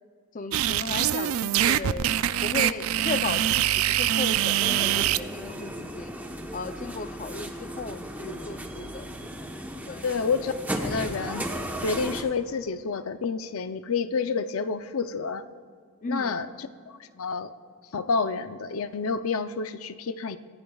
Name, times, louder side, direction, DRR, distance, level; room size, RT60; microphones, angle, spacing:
voice 1, 0.3-2.1 2.4-3.7 4.0-6.1 6.5-9.1 9.9-10.0 16.0-16.3, left 4 dB, 40° left, 10 dB, 0.5 m, -35 dB
sound 1, 0.5-5.2, right 11 dB, 90° right, 0.4 m, -24 dB
sound 2, 4.6-12.2, equal, 10° right, 1.0 m, -35 dB
voice 2, 10.0-10.5 10.8-11.5 11.8-15.4 16.1-17.5 17.9-20.4, left 5 dB, 90° left, 11 dB, 0.6 m, -29 dB
24.5 x 16.0 x 2.4 m, 2.1 s
head